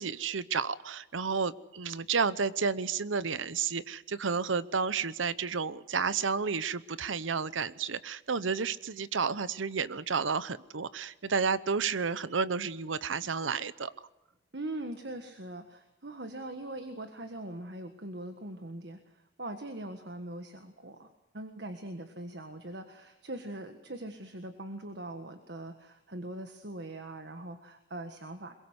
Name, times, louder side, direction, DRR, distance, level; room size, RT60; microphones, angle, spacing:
voice 1, 0.0-13.9, right 5 dB, 90° right, 17 dB, 0.9 m, -31 dB
voice 2, 14.5-28.5, right 1 dB, 60° right, 7 dB, 1.6 m, -42 dB
22.5 x 22.0 x 8.1 m, 0.94 s
head